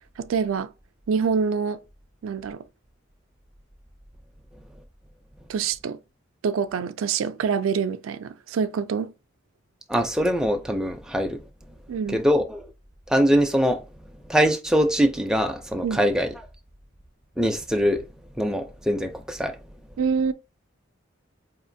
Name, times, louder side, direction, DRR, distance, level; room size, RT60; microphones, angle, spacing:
voice 1, 0.2-0.7 1.1-1.8 2.2-2.6 5.5-6.0 6.4-9.1 11.9-12.2 15.8-16.0 20.0-20.3, right 6 dB, 85° right, 0.3 m, -25 dB
voice 2, 9.9-11.4 12.1-12.6 13.1-13.8 14.3-16.3 17.4-18.0 18.4-19.5, equal, 5° right, 0.4 m, -22 dB
4.8 x 2.9 x 2.6 m
head